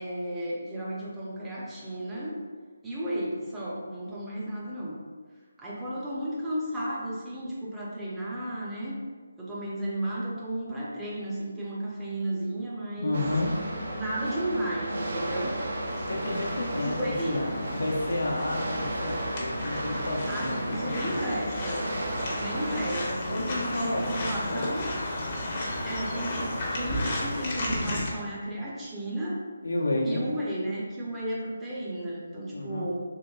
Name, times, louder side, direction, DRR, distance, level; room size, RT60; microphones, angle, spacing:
voice 1, 0.0-2.4 2.8-5.0 5.6-9.0 9.4-13.2 13.9-15.5 16.8-17.4 20.3-21.9 22.3-24.9 25.9-29.4 30.0-33.0, right 1 dB, 10° right, -7 dB, 0.6 m, -33 dB
voice 2, 13.0-13.5 16.1-17.5 17.7-21.2 23.3-24.6 29.6-30.2 32.5-32.9, left 2 dB, 75° left, -3 dB, 0.8 m, -31 dB
sound 1, 13.1-23.0, right 1 dB, 55° right, 0.6 m, -34 dB
sound 2, 15.9-28.1, left 1 dB, 35° left, 0.8 m, -34 dB
3.8 x 2.9 x 2.4 m, 1.4 s
figure-of-eight pair, 150°, 0 cm